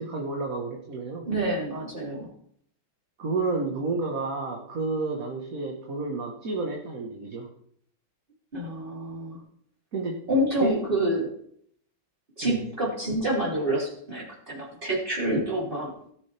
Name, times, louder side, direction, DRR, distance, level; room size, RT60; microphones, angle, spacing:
voice 1, 0.0-1.3 3.2-7.5 9.9-10.2 10.6-10.8 12.4-12.6, right 3 dB, 45° right, 0 dB, 1.8 m, -30 dB
voice 2, 1.3-2.3 8.5-9.4 10.3-11.3 12.4-15.9, right 1 dB, 25° right, -4 dB, 3.6 m, -27 dB
18.0 x 7.1 x 3.5 m, 0.65 s
omnidirectional pair, 2.1 m